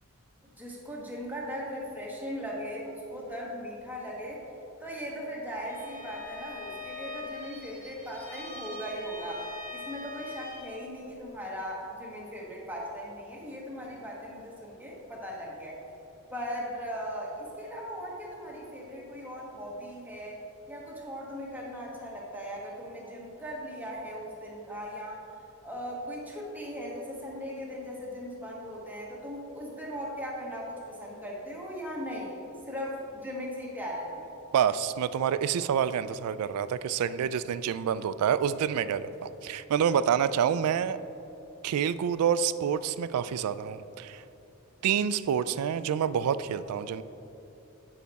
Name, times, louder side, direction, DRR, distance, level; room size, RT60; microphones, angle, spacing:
voice 1, 0.4-4.4 4.8-15.8 16.3-20.4 20.7-25.2 25.6-32.4 32.7-34.3, equal, 10° right, -4 dB, 1.3 m, -38 dB
Bowed string instrument, 5.6-10.9, left 2 dB, 40° left, 1.1 m, -42 dB
voice 2, 34.5-41.0 41.6-44.2 44.8-47.0, right 8 dB, 80° right, 16 dB, 0.3 m, -27 dB
8.4 x 5.7 x 4.0 m, 2.9 s
head